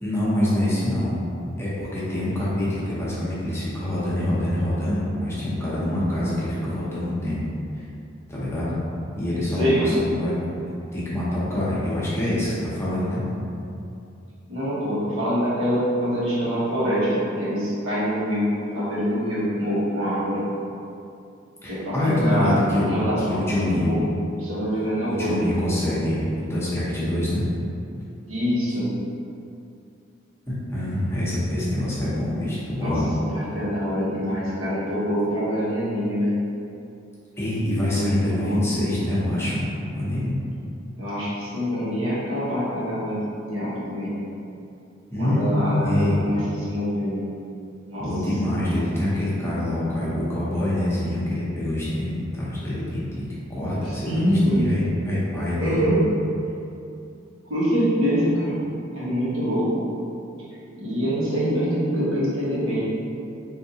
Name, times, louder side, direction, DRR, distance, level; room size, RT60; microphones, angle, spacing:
voice 1, 0.0-1.2 1.6-7.4 7.7-7.8 8.3-8.7 9.1-10.3 10.9-13.2 21.6-22.9 23.2-23.9 25.2-27.4 30.5-33.1 37.4-39.6 39.9-40.3 45.1-46.2 48.0-53.2 53.5-55.8, left 1 dB, 15° left, -9 dB, 0.8 m, -25 dB
voice 2, 9.5-9.9 14.5-20.5 21.7-22.6 22.9-24.0 24.4-25.5 28.3-29.0 32.8-33.0 33.3-36.4 37.8-38.6 41.0-44.2 45.2-47.4 47.9-48.1 53.8-54.8 55.6-56.1 57.4-58.6 58.9-59.9 60.8-62.8, equal, 85° right, -9 dB, 1.2 m, -25 dB
3.7 x 2.7 x 2.8 m, 2.6 s
head